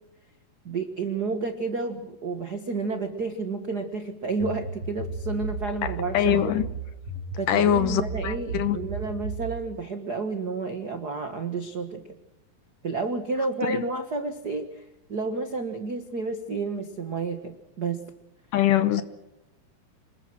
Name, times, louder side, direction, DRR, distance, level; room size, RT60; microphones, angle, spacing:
voice 1, 0.6-6.6 7.4-12.0 12.8-14.8 15.1-18.0, right 4 dB, 55° right, 1.0 m, -31 dB
sound 1, 4.4-9.6, right 3 dB, 40° right, 5.1 m, -34 dB
voice 2, 5.8-6.6 7.5-8.8 13.6-13.8 18.5-19.0, left 10 dB, 70° left, 2.3 m, -23 dB
27.5 x 21.0 x 6.3 m
omnidirectional pair, 4.4 m